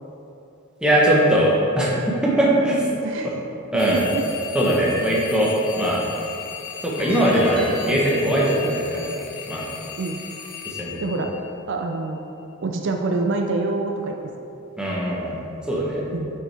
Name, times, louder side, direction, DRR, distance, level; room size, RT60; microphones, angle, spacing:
voice 1, 0.8-1.9 2.2-3.3 3.7-4.0 4.5-6.0 6.8-9.1 9.4-9.7 10.6-11.0 14.8-15.4 15.7-16.0, right 1 dB, 5° right, -6 dB, 0.9 m, -20 dB
voice 2, 3.0-3.4 3.9-4.2 10.0-10.2 11.0-11.3 11.7-12.2 12.6-14.1 16.1-16.3, right 3 dB, 55° right, 3 dB, 0.4 m, -26 dB
sound 1, 3.8-11.9, left 8 dB, 75° left, 0.6 m, -37 dB
sound 2, 7.0-10.1, left 2 dB, 25° left, 0.5 m, -39 dB
7.4 x 5.0 x 3.3 m, 2.8 s
head